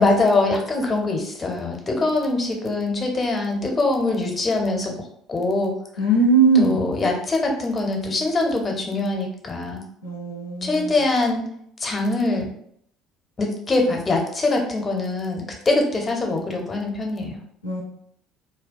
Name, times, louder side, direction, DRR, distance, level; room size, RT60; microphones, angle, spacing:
voice 1, 0.0-4.9 5.3-5.7 6.5-9.8 10.6-11.4 11.8-12.5 13.4-17.4, left 2 dB, 30° left, 2 dB, 0.6 m, -23 dB
voice 2, 6.0-6.9 10.0-10.9 17.6-17.8, right 3 dB, 90° left, -3 dB, 0.4 m, -20 dB
2.2 x 2.2 x 2.5 m, 0.68 s
figure-of-eight pair, 60°, 0 cm